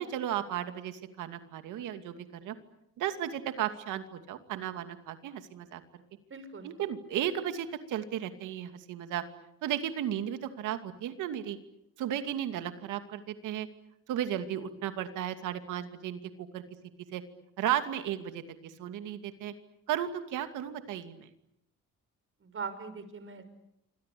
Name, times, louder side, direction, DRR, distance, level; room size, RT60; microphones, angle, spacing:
voice 1, 0.0-2.5 3.0-5.8 6.6-9.2 9.6-11.6 12.0-13.7 14.1-16.6 17.1-17.2 17.6-19.5 19.9-21.3, right 10 dB, 90° right, 8 dB, 2.6 m, -34 dB
voice 2, 6.3-6.7 22.4-23.4, right 5 dB, 45° right, 10 dB, 5.8 m, -40 dB
27.0 x 25.5 x 8.6 m, 0.82 s
cardioid pair, 90°, 30 cm